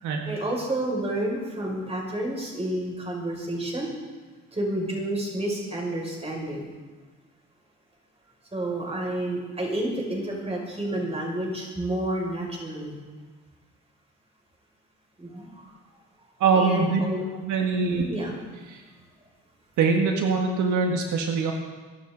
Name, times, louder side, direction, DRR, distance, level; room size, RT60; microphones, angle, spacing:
voice 1, 0.2-3.9 4.5-6.7 8.5-13.0 15.2-15.7 16.6-17.2 17.8-18.3, right 1 dB, 20° right, -2 dB, 6.1 m, -30 dB
voice 2, 16.4-17.0 17.4-18.0 18.7-18.8 19.8-21.5, right 5 dB, 80° right, 2 dB, 1.6 m, -23 dB
22.5 x 12.0 x 3.9 m, 1.4 s
cardioid pair, 90°, 30 cm